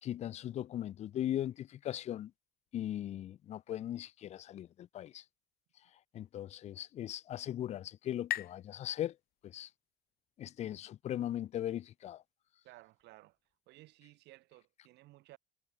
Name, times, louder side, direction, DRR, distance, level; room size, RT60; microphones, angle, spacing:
voice 1, 0.0-2.3 2.7-5.2 6.1-9.2 9.4-9.7 10.4-12.2, left 12 dB, 35° left, 0.6 m, -39 dB
sound 1, 6.8-10.2, left 15 dB, 55° left, 3.3 m, -45 dB
voice 2, 12.6-13.4 13.7-15.4, right 18 dB, 65° right, 6.2 m, -57 dB
cardioid pair, 150°, 19 cm